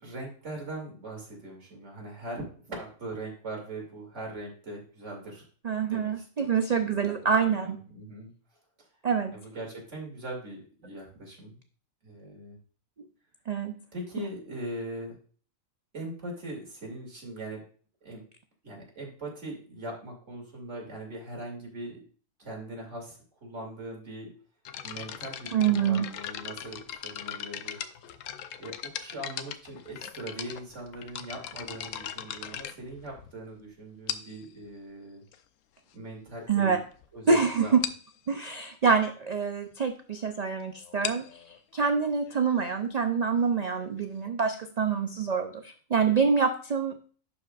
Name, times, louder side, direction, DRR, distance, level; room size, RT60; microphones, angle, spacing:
voice 1, 0.0-5.4 5.8-8.3 8.8-8.9 9.3-11.6 12.0-12.6 13.9-15.2 15.9-17.6 18.0-18.2 18.6-22.0 22.4-24.3 24.8-27.8 28.6-35.2 35.9-36.8 37.1-37.9, right 1 dB, 60° right, 0 dB, 2.6 m, -41 dB
voice 2, 5.6-7.8 9.0-9.3 13.5-13.8 25.5-26.1 36.5-36.8 37.3-37.8 38.3-47.0, right 5 dB, 75° right, 7 dB, 0.3 m, -26 dB
sound 1, 24.7-33.5 34.1-34.5 35.3-35.4 36.1-36.2 36.4-36.6 36.9-37.1 37.3-37.4 37.8-38.1 40.8-44.3, left 10 dB, 75° left, 0.9 m, -39 dB
11.0 x 5.1 x 2.4 m, 0.41 s
omnidirectional pair, 1.4 m